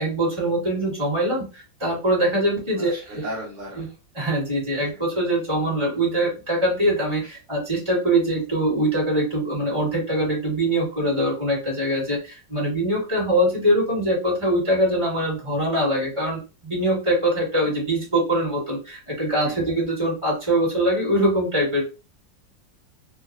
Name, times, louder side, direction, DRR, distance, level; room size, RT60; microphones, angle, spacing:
voice 1, 0.0-2.9 3.8-3.9 4.1-21.8, right 1 dB, 15° right, -4 dB, 1.4 m, -23 dB
voice 2, 2.7-3.8 4.7-5.0 7.2-7.3 19.4-19.7, equal, 65° right, -2 dB, 0.8 m, -36 dB
3.0 x 2.3 x 2.6 m, 0.32 s
omnidirectional pair, 2.0 m